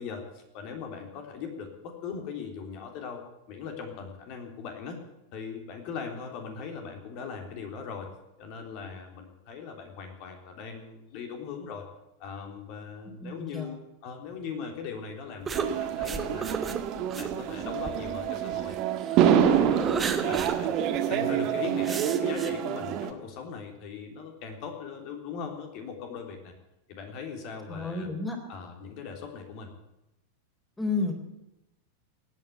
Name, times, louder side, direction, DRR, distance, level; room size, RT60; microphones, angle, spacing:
voice 1, 0.0-3.2 3.5-5.0 5.3-8.1 8.4-11.8 12.2-16.5 17.1-18.7 19.1-20.8 21.1-26.5 26.9-28.1 28.5-29.7, left 6 dB, 45° left, 4 dB, 3.5 m, -39 dB
voice 2, 13.2-13.7 27.7-28.4 30.8-31.1, left 3 dB, 10° left, 2 dB, 4.1 m, -31 dB
sound 1, 15.5-18.8 19.2-20.6 20.9-21.0 21.8-22.5, right 5 dB, 20° right, 1.4 m, -34 dB
sound 2, 15.5-23.1, right 9 dB, 40° right, 1.6 m, -27 dB
18.0 x 9.2 x 8.3 m, 0.91 s
figure-of-eight pair, 90°, 0 cm